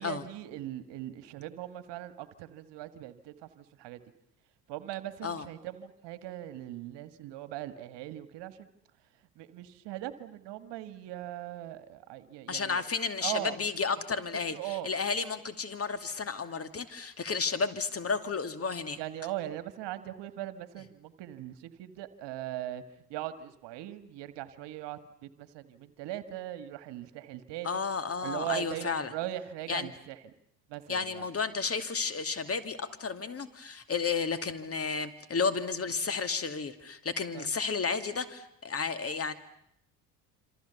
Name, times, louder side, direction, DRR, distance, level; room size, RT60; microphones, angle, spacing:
voice 1, 0.0-4.0 4.7-8.7 9.4-12.8 13.2-13.5 14.5-14.9 19.0-22.8 23.1-27.8 28.2-30.3 30.7-31.3 37.3-37.5, right 13 dB, 60° right, 12 dB, 1.7 m, -40 dB
voice 2, 12.5-19.0 27.6-29.1 29.7-29.9 30.9-39.3, left 5 dB, 30° left, 10 dB, 2.5 m, -32 dB
27.0 x 27.0 x 7.0 m, 0.76 s
hypercardioid pair, 60°, 48 cm